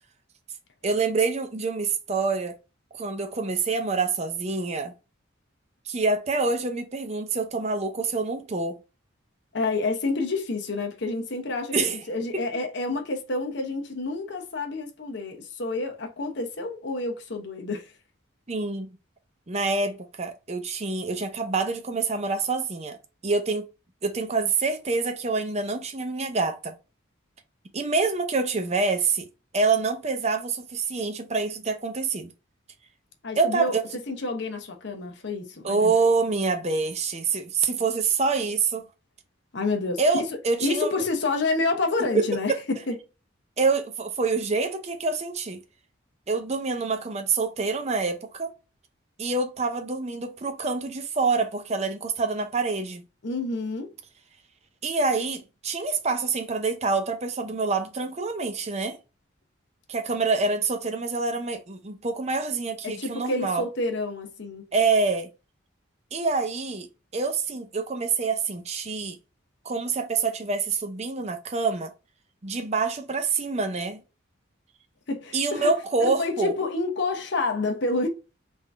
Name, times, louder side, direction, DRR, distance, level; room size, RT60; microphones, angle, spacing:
voice 1, 0.8-2.5 3.0-4.9 5.9-8.8 11.7-12.0 12.3-12.6 18.5-18.9 19.5-23.0 23.2-23.7 24.0-26.7 27.7-29.3 29.5-32.3 33.4-33.8 35.6-38.8 40.0-40.9 42.1-42.6 43.6-45.6 46.3-48.5 49.2-53.0 54.8-59.0 59.9-63.6 64.7-65.3 66.1-66.9 67.1-69.2 69.6-71.9 72.4-74.0 75.3-76.5, right 4 dB, 35° right, 0.6 m, -26 dB
voice 2, 9.5-11.7 12.1-17.9 33.2-33.7 34.1-35.9 39.5-42.5 42.9-43.0 53.2-53.9 62.8-64.7 75.1-75.7 76.2-78.1, left 3 dB, 60° left, 0.8 m, -28 dB
3.6 x 2.6 x 3.4 m
head